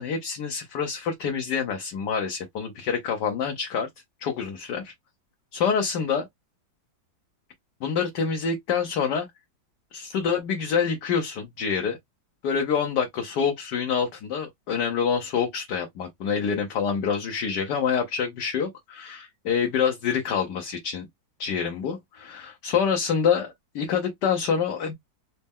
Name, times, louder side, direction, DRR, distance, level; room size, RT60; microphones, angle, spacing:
voice 1, 0.0-3.9 4.2-4.9 5.5-6.3 7.8-9.3 9.9-12.0 12.4-21.1 21.4-24.9, left 6 dB, 65° left, 1.3 m, -26 dB
4.2 x 2.0 x 3.5 m
omnidirectional pair, 2.1 m